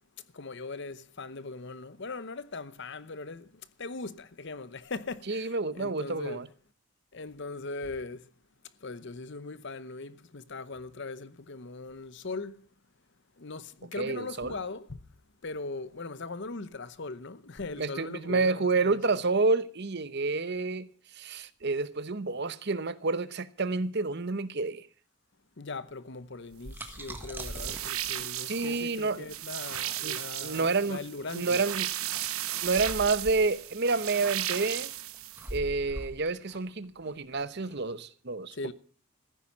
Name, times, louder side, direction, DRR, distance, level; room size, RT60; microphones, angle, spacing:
voice 1, 0.3-6.4 7.1-8.3 8.8-12.7 13.4-15.0 15.4-19.0 25.6-31.6 38.5-38.7, left 3 dB, 50° left, 0.8 m, -40 dB
voice 2, 5.3-6.5 14.0-14.5 17.8-20.9 21.1-24.9 28.5-29.3 30.0-31.0 31.3-31.9 32.6-34.9 35.5-38.7, right 3 dB, 50° right, 0.9 m, -29 dB
sound 1, 26.3-37.8, right 1 dB, 10° right, 1.5 m, -44 dB
sound 2, 27.4-35.5, right 12 dB, 75° right, 1.0 m, -35 dB
15.0 x 9.7 x 7.3 m
head